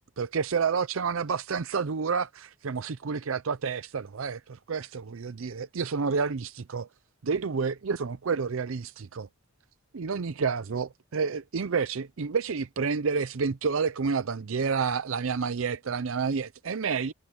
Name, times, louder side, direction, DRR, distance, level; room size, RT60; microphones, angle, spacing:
voice 1, 0.2-6.9 7.2-9.3 9.9-17.1, right 5 dB, 70° right, 0.6 m, -29 dB
head